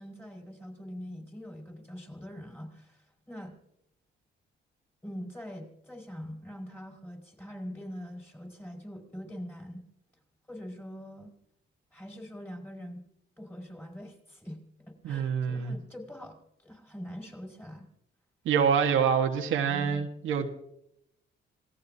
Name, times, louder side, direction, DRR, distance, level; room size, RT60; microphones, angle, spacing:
voice 1, 0.0-3.5 5.0-9.8 10.5-11.3 11.9-13.1 13.4-17.9 19.7-20.1, equal, 10° left, 1 dB, 5.6 m, -43 dB
voice 2, 15.0-15.7 18.4-20.5, right 7 dB, 80° right, 4 dB, 1.4 m, -26 dB
26.5 x 18.5 x 2.7 m, 0.80 s
cardioid pair, 90°, 20 cm